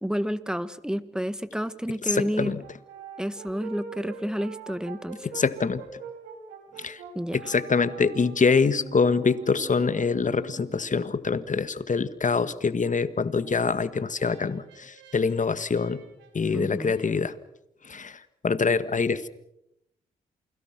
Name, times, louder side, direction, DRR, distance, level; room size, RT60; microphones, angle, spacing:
voice 1, 0.0-2.5 3.2-5.3 7.1-7.4 16.5-16.9, equal, 5° right, 14 dB, 1.7 m, -30 dB
voice 2, 2.1-2.6 5.2-5.8 6.8-7.0 7.3-16.0 16.3-17.3 17.9-18.2 18.4-19.3, left 5 dB, 45° left, 13 dB, 1.8 m, -25 dB
Brass instrument, 2.6-10.9 13.4-17.1, right 5 dB, 85° right, 3.9 m, -44 dB
28.5 x 21.5 x 6.1 m, 0.83 s
hypercardioid pair, 45°, 19 cm